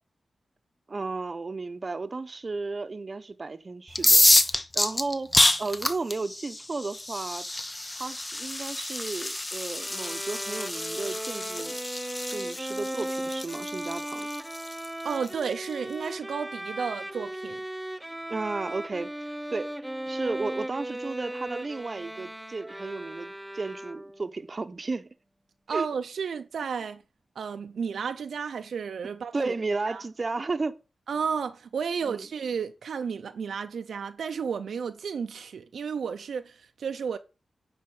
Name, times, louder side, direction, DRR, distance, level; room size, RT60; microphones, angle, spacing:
voice 1, 0.9-7.4 7.9-11.8 12.3-14.3 18.3-19.8 20.1-25.1 25.7-25.9 29.3-30.8 32.1-32.3, right 3 dB, 45° right, 0.9 m, -34 dB
sound 1, 3.9-15.6, left 1 dB, 25° left, 1.0 m, -27 dB
Bowed string instrument, 9.8-24.3, right 1 dB, 10° right, 0.4 m, -37 dB
voice 2, 15.0-17.6 25.7-27.0 27.4-29.6 29.9-30.0 31.1-37.2, right 6 dB, 85° right, 0.6 m, -32 dB
9.6 x 4.4 x 7.1 m
cardioid pair, 60°, 0 cm